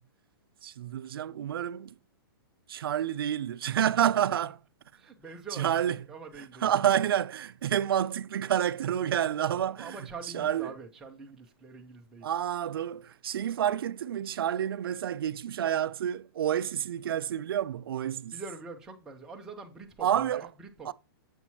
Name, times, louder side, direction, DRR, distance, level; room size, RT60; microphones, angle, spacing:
voice 1, 0.6-2.0 2.7-4.6 5.5-6.0 6.4-10.0 10.3-10.7 12.2-18.3 20.0-20.5 20.9-21.0, right 10 dB, 70° right, 0.4 m, -29 dB
voice 2, 4.9-6.7 9.5-12.3 18.3-20.9, right 4 dB, 5° right, 0.5 m, -45 dB
7.0 x 5.9 x 2.8 m
hypercardioid pair, 180°, 13 cm